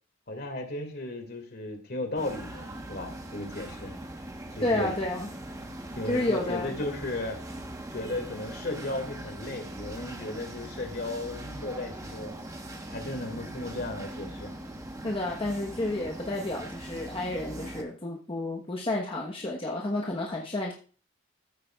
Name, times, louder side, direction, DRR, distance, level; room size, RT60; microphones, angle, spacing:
voice 1, 0.3-3.9 4.5-4.9 6.0-7.4 7.9-12.4 12.9-14.5, left 2 dB, 55° left, 5 dB, 2.3 m, -35 dB
sound 1, 2.1-17.8, right 1 dB, 15° right, 1.2 m, -41 dB
voice 2, 4.6-5.3 6.1-6.7 15.0-20.7, left 2 dB, 30° left, -1 dB, 1.1 m, -30 dB
14.5 x 8.5 x 2.4 m, 0.38 s
head